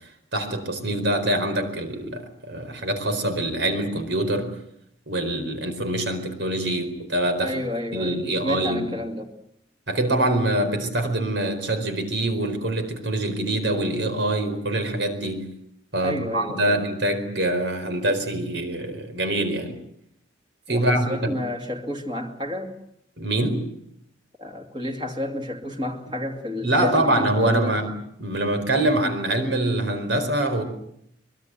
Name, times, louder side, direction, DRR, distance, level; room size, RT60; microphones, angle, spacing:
voice 1, 0.3-4.6 5.1-7.5 7.9-8.9 9.9-15.5 15.9-19.8 20.7-21.4 23.2-23.7 26.6-27.9 28.2-30.6, right 1 dB, 70° right, 4.7 m, -24 dB
voice 2, 7.4-9.3 16.0-16.8 20.7-22.8 24.4-27.8, left 1 dB, 25° right, 2.5 m, -31 dB
25.0 x 22.0 x 7.8 m
head